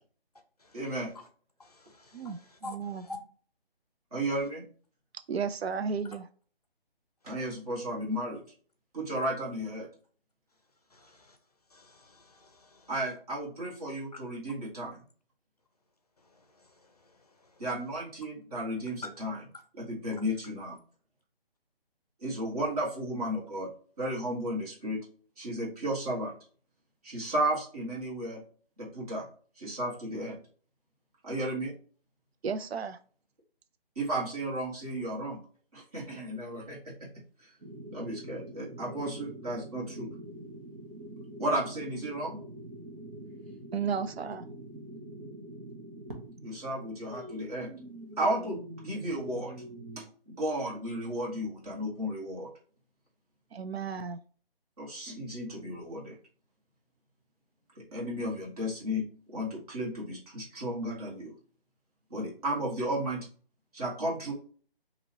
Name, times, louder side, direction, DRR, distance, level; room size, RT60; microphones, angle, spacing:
voice 1, 0.7-1.1 4.1-4.6 7.2-8.4 8.9-9.9 12.9-15.0 17.6-19.4 19.7-20.8 22.2-23.7 24.0-25.0 25.4-26.3 27.0-28.4 28.8-29.3 29.6-30.4 31.2-31.7 33.9-35.4 35.7-37.1 37.4-37.5 37.9-40.1 41.4-42.4 46.4-47.7 48.2-49.5 49.9-52.5 54.8-56.2 57.7-61.3 62.1-63.3 63.7-64.3, right 1 dB, 40° right, 1.8 m, -34 dB
voice 2, 1.6-3.2 10.9-11.4 11.7-12.9 16.3-17.5, left 2 dB, 40° left, 0.5 m, -49 dB
voice 3, 2.1-3.0 5.3-6.3 32.4-33.0 43.7-44.4 53.5-54.2, right 6 dB, 85° right, 0.5 m, -33 dB
sound 1, 37.6-50.0, right 1 dB, 55° right, 1.2 m, -45 dB
3.9 x 2.7 x 2.9 m
hypercardioid pair, 165°, 30 cm